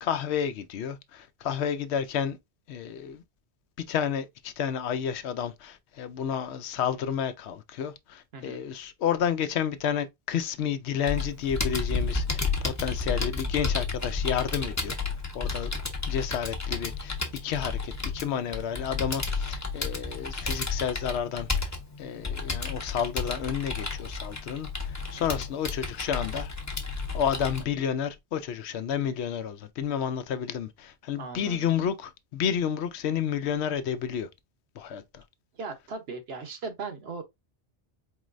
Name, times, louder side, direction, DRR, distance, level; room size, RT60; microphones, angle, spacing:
voice 1, 0.0-2.4 2.7-3.2 3.9-15.0 15.3-15.7 16.1-17.2 17.4-21.7 22.0-26.5 27.1-34.3 34.8-35.2, left 8 dB, 75° left, 0.8 m, -31 dB
Computer keyboard, 11.1-27.6, left 4 dB, 15° left, 0.7 m, -32 dB
voice 2, 31.2-31.7 35.5-37.2, right 4 dB, 65° right, 1.1 m, -38 dB
4.6 x 3.1 x 2.5 m
omnidirectional pair, 1.1 m